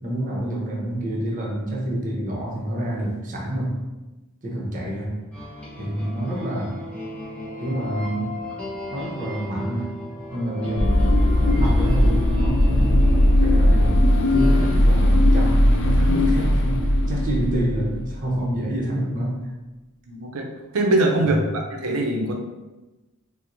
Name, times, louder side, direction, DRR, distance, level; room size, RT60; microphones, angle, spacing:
voice 1, 0.0-3.8 4.4-5.2 5.8-6.8 7.6-8.3 8.9-9.9 10.3-19.5 21.2-21.3, right 1 dB, 35° right, -3 dB, 0.7 m, -28 dB
sound 1, 5.3-14.8, left 1 dB, 5° left, 0.7 m, -35 dB
sound 2, 10.8-18.2, left 1 dB, 55° left, 0.4 m, -18 dB
voice 2, 20.1-20.5 20.7-22.4, right 2 dB, 75° right, 1 dB, 0.5 m, -22 dB
4.3 x 2.0 x 2.5 m, 1.1 s
head